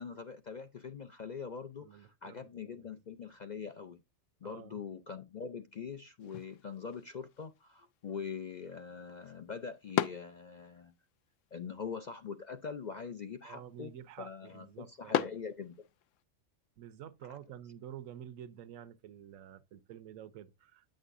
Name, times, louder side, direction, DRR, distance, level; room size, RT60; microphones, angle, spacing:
voice 1, 0.0-4.0 4.4-10.9 11.5-13.9 14.2-15.8 17.2-17.4, left 6 dB, 55° left, 0.5 m, -43 dB
voice 2, 1.8-2.5 2.8-3.0 4.4-4.8 13.4-15.3 16.8-20.9, right 10 dB, 85° right, 1.1 m, -49 dB
sound 1, 6.2-16.2, left 10 dB, 75° left, 0.9 m, -41 dB
9.0 x 6.4 x 2.5 m
omnidirectional pair, 1.4 m